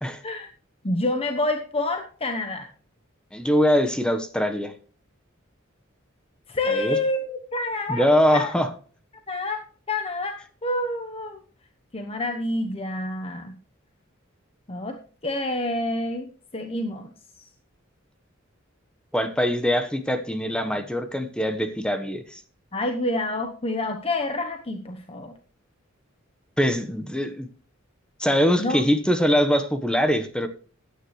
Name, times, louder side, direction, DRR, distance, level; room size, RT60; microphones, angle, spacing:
voice 1, 0.8-2.7 6.5-8.5 9.3-11.4 11.9-13.5 14.7-17.1 22.7-25.3 28.6-28.8, left 2 dB, 30° left, 5 dB, 1.1 m, -28 dB
voice 2, 3.3-4.7 6.7-7.0 7.9-8.7 19.1-22.4 26.6-27.5 28.2-30.5, equal, 5° left, 7 dB, 1.2 m, -23 dB
15.5 x 10.0 x 3.2 m, 0.40 s
head